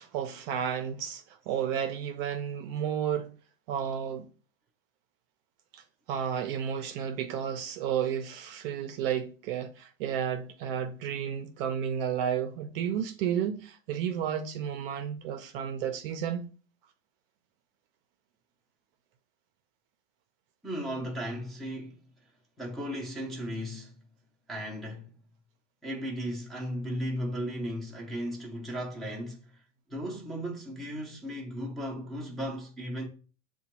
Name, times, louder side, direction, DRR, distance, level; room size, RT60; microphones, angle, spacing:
voice 1, 0.0-3.3 3.7-4.3 5.7-5.8 6.1-16.5, right 8 dB, 45° right, 0.5 m, -32 dB
voice 2, 20.6-22.0 22.6-23.9 24.5-25.1 25.8-29.6 29.9-33.1, equal, ahead, 0.5 m, -36 dB
6.7 x 2.3 x 2.9 m
supercardioid pair, 135°, 39 cm